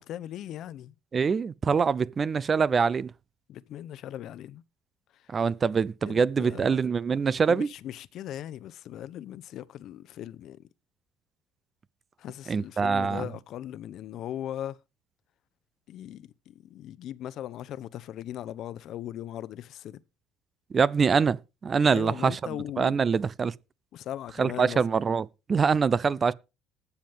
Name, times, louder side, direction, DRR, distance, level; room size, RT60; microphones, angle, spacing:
voice 1, 0.0-0.9 3.5-4.6 5.1-5.3 6.0-6.8 7.5-10.7 12.2-14.8 15.9-20.0 21.9-23.0 23.9-24.8, left 11 dB, 60° left, 0.8 m, -39 dB
voice 2, 1.1-3.1 5.3-7.7 12.5-13.2 20.7-22.4 22.8-23.5 24.4-26.3, right 5 dB, 35° right, 0.6 m, -24 dB
20.0 x 7.2 x 3.5 m
supercardioid pair, 80°, 0 cm